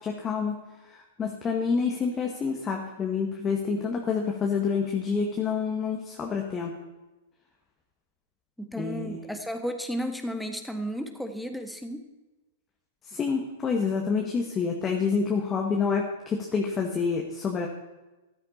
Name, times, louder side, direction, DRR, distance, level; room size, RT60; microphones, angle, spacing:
voice 1, 0.0-0.5 1.2-6.8 8.8-9.2 13.1-17.7, left 5 dB, 20° left, 1 dB, 1.8 m, -28 dB
voice 2, 8.6-12.0, equal, ahead, 5 dB, 1.6 m, -33 dB
14.0 x 12.5 x 4.3 m, 1.1 s
figure-of-eight pair, 105°, 0 cm